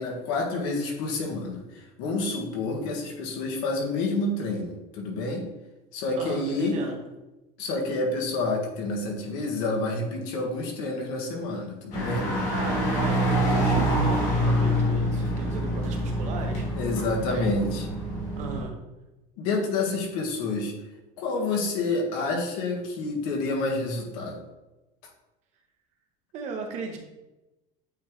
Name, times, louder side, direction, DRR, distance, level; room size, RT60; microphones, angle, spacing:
voice 1, 0.0-5.5 5.9-6.9 7.6-12.3 16.7-17.9 19.4-20.7 21.2-24.4, left 2 dB, 75° left, 0 dB, 1.6 m, -28 dB
voice 2, 6.1-7.0 12.5-16.6 17.3-17.5 18.4-18.7 26.3-27.0, right 3 dB, 40° right, 3 dB, 1.1 m, -36 dB
sound 1, 11.9-18.6, equal, 45° left, 1.7 m, -26 dB
8.5 x 3.7 x 3.2 m, 1.0 s
cardioid pair, 175°, 17 cm